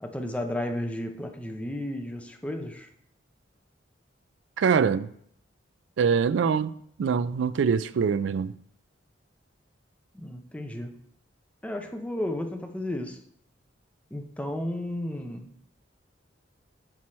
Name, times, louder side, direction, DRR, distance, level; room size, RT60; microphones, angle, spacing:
voice 1, 0.0-2.9 10.1-11.0 11.6-13.2 14.1-15.5, left 1 dB, 5° left, 0.5 m, -33 dB
voice 2, 4.6-5.1 6.0-6.7 7.0-8.6, right 6 dB, 70° right, 0.3 m, -24 dB
5.9 x 4.7 x 4.2 m
head